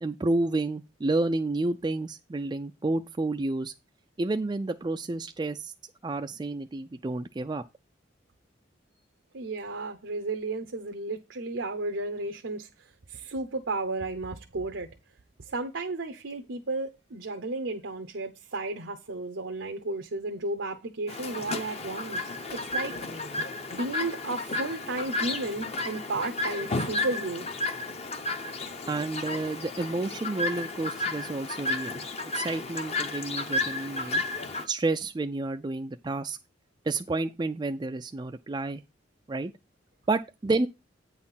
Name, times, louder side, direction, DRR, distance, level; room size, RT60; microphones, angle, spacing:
voice 1, 0.0-3.7 4.2-5.7 6.0-7.6 28.9-32.0 32.3-34.2 34.7-36.4 36.8-38.8 39.3-39.5 40.1-40.7, right 2 dB, 25° right, 0.3 m, -30 dB
voice 2, 9.3-12.7 13.1-14.9 15.5-22.9 23.7-27.5, right 2 dB, 85° right, 0.8 m, -33 dB
Chirp tweet, 21.1-34.7, left 2 dB, 35° left, 0.7 m, -33 dB
8.8 x 4.2 x 5.6 m
head